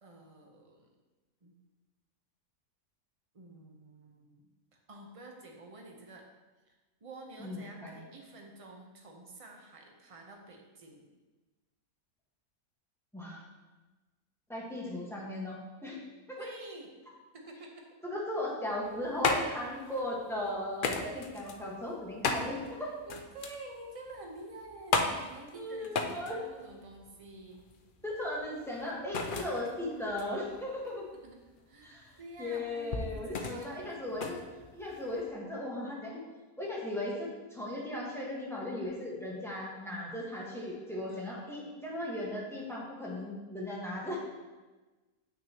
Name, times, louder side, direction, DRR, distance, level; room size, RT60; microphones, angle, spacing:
voice 1, 0.0-0.9 1.4-1.5 3.3-4.5 4.9-6.3 6.7-11.1 16.4-16.9 17.3-17.9 23.0-27.7 31.2-31.4 31.7-34.5 41.1-41.4, right 2 dB, 30° right, 1 dB, 0.8 m, -49 dB
voice 2, 7.4-8.0 13.1-13.5 14.5-16.0 16.3-16.5 18.0-23.0 25.5-26.4 28.0-31.1 31.8-32.1 32.4-34.4 34.7-36.2 36.6-44.2, left 1 dB, ahead, -4 dB, 1.3 m, -37 dB
sound 1, 18.7-35.3, left 4 dB, 60° left, 0.5 m, -36 dB
8.7 x 6.2 x 3.0 m, 1.2 s
omnidirectional pair, 1.6 m